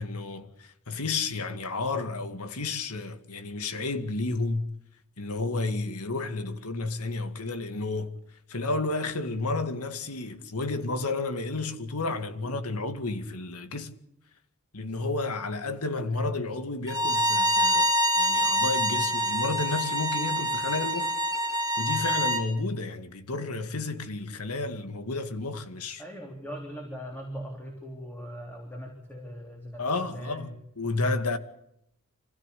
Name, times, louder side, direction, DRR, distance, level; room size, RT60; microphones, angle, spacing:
voice 1, 0.0-4.7 5.2-8.1 8.5-13.9 14.7-21.1 21.8-26.0 29.8-31.4, left 3 dB, 90° left, 2.2 m, -31 dB
Bowed string instrument, 16.9-22.4, equal, 15° right, 2.2 m, -26 dB
voice 2, 26.0-30.6, equal, 10° left, 3.5 m, -40 dB
25.5 x 16.5 x 8.5 m
head